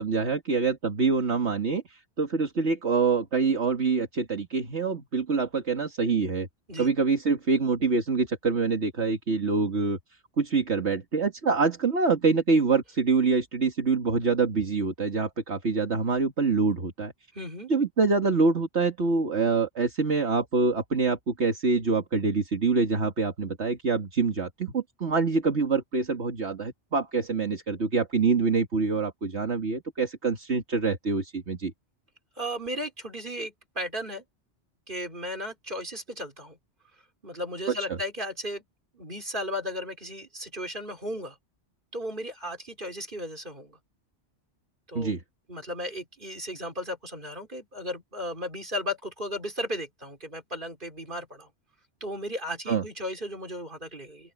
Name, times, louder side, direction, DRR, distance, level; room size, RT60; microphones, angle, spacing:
voice 1, 0.0-6.5 6.8-10.0 10.4-17.1 17.7-31.7 37.7-37.8 45.0-45.2 52.7-52.8, right 4 dB, 70° right, 2.3 m, -25 dB
voice 2, 17.3-17.7 32.4-34.2 34.9-36.6 37.2-38.6 38.9-41.3 41.9-43.7 44.9-45.1 45.5-51.5 52.0-54.3, equal, 45° right, 4.6 m, -35 dB
open air
omnidirectional pair, 1.2 m